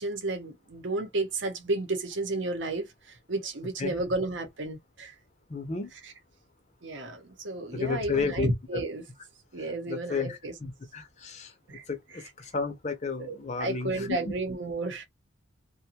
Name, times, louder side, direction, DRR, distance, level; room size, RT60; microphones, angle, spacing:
voice 1, 0.0-5.2 6.0-6.1 6.8-9.0 9.5-10.5 11.7-11.9 13.2-15.0, right 2 dB, 70° right, 0.8 m, -32 dB
voice 2, 5.5-5.9 7.7-8.8 9.9-14.3, left 4 dB, 35° left, 0.6 m, -33 dB
2.5 x 2.2 x 2.8 m
head